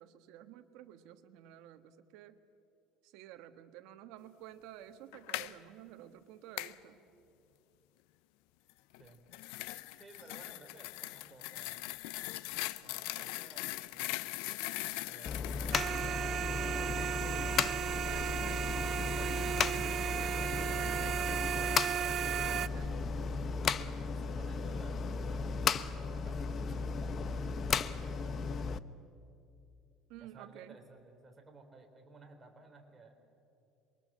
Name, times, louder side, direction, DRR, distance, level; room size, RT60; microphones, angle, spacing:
voice 1, 0.0-2.4 3.0-7.0 22.6-23.0 30.1-30.8, right 12 dB, 75° right, 9 dB, 1.4 m, -52 dB
sound 1, 5.1-5.5 6.6-6.8 8.9-16.1, left 18 dB, 85° left, 0.6 m, -40 dB
voice 2, 9.9-11.9 12.8-13.7 15.1-15.6 17.1-18.4 18.9-21.5 22.4-23.0 24.1-27.5 27.8-28.4 30.2-33.2, right 3 dB, 20° right, 3 dB, 4.0 m, -57 dB
sound 2, 15.3-28.8, left 5 dB, 40° left, 0.8 m, -35 dB
sound 3, 15.7-22.7, right 10 dB, 45° right, 0.6 m, -35 dB
27.5 x 23.0 x 7.5 m, 2.6 s
cardioid pair, 125°, 0 cm